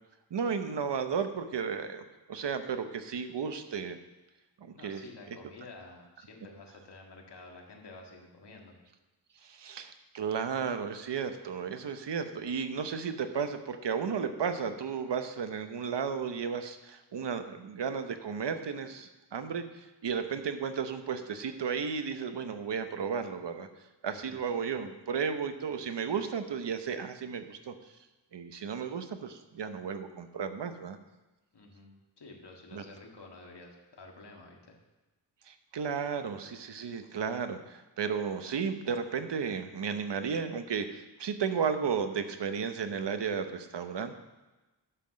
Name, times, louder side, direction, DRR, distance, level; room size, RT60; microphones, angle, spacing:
voice 1, 0.3-4.0 4.6-5.0 9.4-23.7 24.0-27.7 28.3-31.0 32.7-32.8 35.5-44.2, right 6 dB, 75° right, 8 dB, 0.9 m, -34 dB
voice 2, 4.7-8.8 24.0-24.4 31.5-34.8, left 3 dB, 70° left, 0 dB, 1.9 m, -50 dB
11.0 x 5.9 x 6.3 m, 1.1 s
wide cardioid pair, 140°, 42 cm